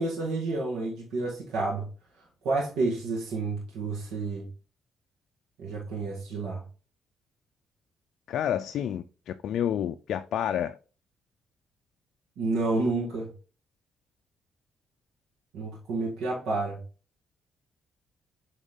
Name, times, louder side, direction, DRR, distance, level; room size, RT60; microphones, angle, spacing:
voice 1, 0.0-1.9 2.4-4.5 5.6-6.6 12.4-13.3 15.5-16.8, right 3 dB, 85° right, 1.9 m, -30 dB
voice 2, 8.3-10.8, left 10 dB, 70° left, 0.4 m, -29 dB
8.0 x 3.6 x 3.6 m
cardioid pair, 90°, 0 cm